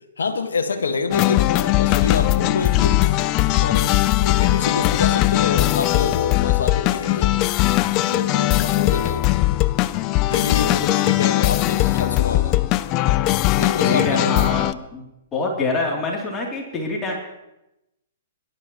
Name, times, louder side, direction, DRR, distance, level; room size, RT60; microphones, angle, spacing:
voice 1, 0.2-3.0 3.5-7.4 8.0-9.3 10.3-12.6 13.5-14.4, left 4 dB, 85° left, 6 dB, 1.5 m, -27 dB
sound 1, 1.1-14.7, left 16 dB, 35° left, 0.5 m, -19 dB
voice 2, 13.8-17.2, left 3 dB, 20° left, -1 dB, 3.0 m, -25 dB
22.5 x 12.0 x 3.1 m, 0.91 s
hypercardioid pair, 130°, 0 cm